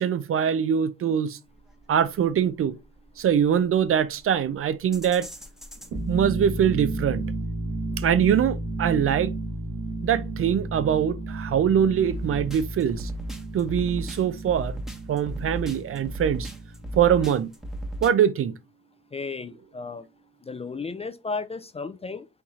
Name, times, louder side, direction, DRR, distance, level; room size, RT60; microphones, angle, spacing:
voice 1, 0.0-1.4 1.9-2.7 3.2-5.3 6.1-7.2 8.0-9.3 10.0-13.1 13.5-14.8 15.1-16.5 17.0-17.5 18.0-18.5, right 8 dB, 50° right, 0.5 m, -23 dB
sound 1, 1.5-18.1, right 1 dB, ahead, 0.9 m, -37 dB
sound 2, 5.8-17.3, right 2 dB, 70° right, 1.5 m, -33 dB
voice 2, 19.1-20.1 20.4-22.3, left 4 dB, 20° left, 0.3 m, -34 dB
4.5 x 2.8 x 3.6 m
cardioid pair, 90°, 30 cm